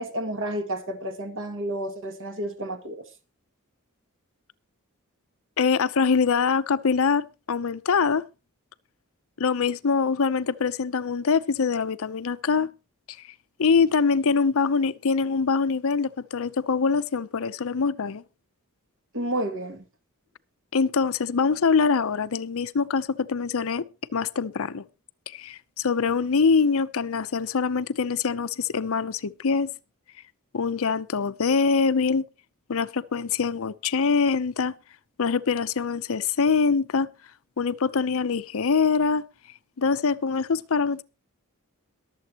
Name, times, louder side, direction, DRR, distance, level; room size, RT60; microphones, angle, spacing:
voice 1, 0.0-3.0 19.1-19.8, right 1 dB, 65° right, 2.2 m, -31 dB
voice 2, 5.6-8.2 9.4-12.7 13.6-18.2 20.7-23.9 24.1-24.8 25.3-29.7 30.5-32.2 32.7-34.7 35.2-37.1 37.6-39.2 39.8-41.0, left 5 dB, 65° left, 0.6 m, -24 dB
22.5 x 7.8 x 2.9 m
head